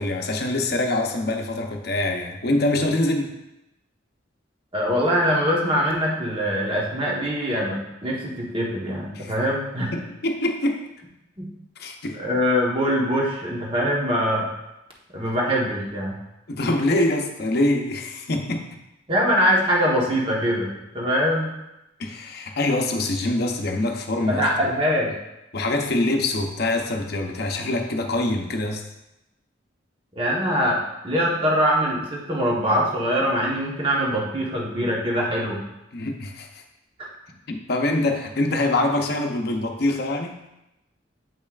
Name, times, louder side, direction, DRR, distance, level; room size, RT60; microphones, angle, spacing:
voice 1, 0.0-3.3 9.1-9.3 9.9-10.9 11.8-12.2 16.5-18.8 22.0-24.7 25.5-28.9 35.9-36.6 37.5-40.4, left 2 dB, 55° left, 3 dB, 0.7 m, -24 dB
voice 2, 4.7-9.9 11.4-11.5 12.2-14.5 15.1-16.2 19.1-21.5 24.2-25.1 30.1-35.6 37.0-37.1, equal, 30° right, -3 dB, 1.1 m, -23 dB
7.5 x 5.4 x 2.4 m, 0.91 s
head